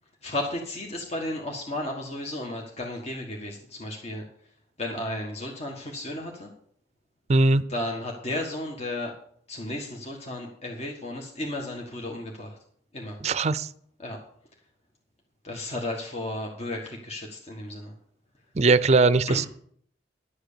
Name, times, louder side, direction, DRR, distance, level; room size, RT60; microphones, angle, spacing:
voice 1, 0.2-4.3 4.8-6.5 7.7-9.2 9.5-12.6 12.9-13.2 14.0-14.2 15.4-17.9 19.3-19.5, left 1 dB, 40° left, 0 dB, 1.5 m, -34 dB
voice 2, 7.3-7.6 13.2-13.7 18.6-19.5, right 3 dB, 40° right, 17 dB, 0.5 m, -20 dB
11.5 x 7.9 x 6.7 m, 0.62 s
head